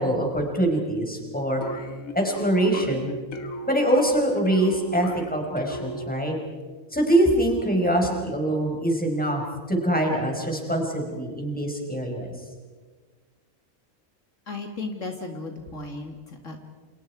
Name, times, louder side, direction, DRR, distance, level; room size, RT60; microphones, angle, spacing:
voice 1, 0.0-1.6 2.1-3.1 3.7-6.4 6.9-12.3, right 1 dB, 5° left, 1 dB, 4.9 m, -24 dB
sound 1, 1.6-6.4, equal, 85° left, 2.0 m, -37 dB
voice 2, 14.5-16.6, left 3 dB, 65° left, 3 dB, 2.4 m, -35 dB
29.0 x 28.0 x 4.8 m, 1.5 s
omnidirectional pair, 1.4 m